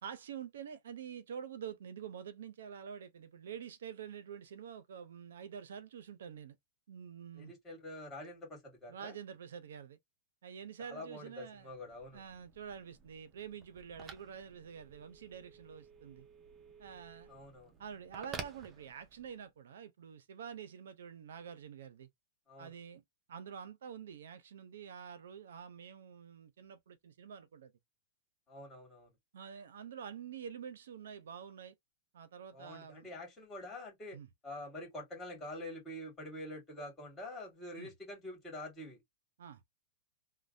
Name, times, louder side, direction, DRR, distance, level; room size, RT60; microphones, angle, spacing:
voice 1, 0.0-6.6 6.9-7.5 8.9-10.0 10.4-11.7 12.1-16.3 16.8-17.3 17.8-22.1 22.6-23.0 23.3-27.7 29.3-31.8 32.1-33.1 34.1-34.3 37.8-37.9 39.4-39.7, right 8 dB, 85° right, 0.6 m, -47 dB
voice 2, 7.4-9.2 10.9-12.2 17.3-17.7 22.5-22.7 28.5-29.1 32.5-34.2 34.4-39.0, left 1 dB, 15° left, 2.0 m, -46 dB
Telephone, 11.6-19.4, right 5 dB, 20° right, 0.6 m, -52 dB
3.2 x 2.1 x 2.5 m
supercardioid pair, 155°, 0 cm